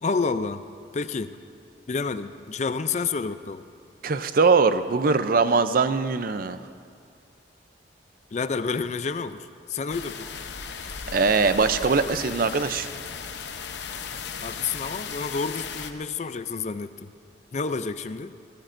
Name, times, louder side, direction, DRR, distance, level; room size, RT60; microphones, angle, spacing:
voice 1, 0.0-0.6 0.9-1.4 1.9-3.6 8.3-10.3 14.4-17.1 17.5-18.3, left 4 dB, 40° left, 12 dB, 0.4 m, -29 dB
voice 2, 4.0-6.6 11.1-12.9, right 4 dB, 50° right, 11 dB, 0.5 m, -21 dB
sound 1, 9.9-15.9, left 6 dB, 65° left, 0.8 m, -36 dB
22.0 x 17.0 x 2.6 m, 2.3 s
head